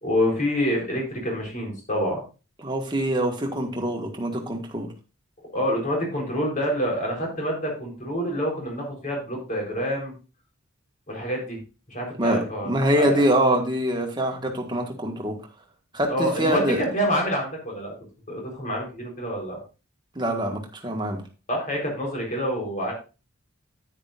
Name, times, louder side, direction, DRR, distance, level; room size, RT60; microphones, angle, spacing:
voice 1, 0.0-2.2 5.5-10.1 11.1-11.6 11.9-13.2 16.1-17.9 18.3-19.6 21.5-22.9, equal, 35° left, 0 dB, 4.0 m, -27 dB
voice 2, 2.6-4.9 12.2-15.4 15.9-16.8 20.1-21.2, right 1 dB, 20° right, 2 dB, 1.5 m, -24 dB
9.8 x 9.8 x 2.5 m, 0.32 s
head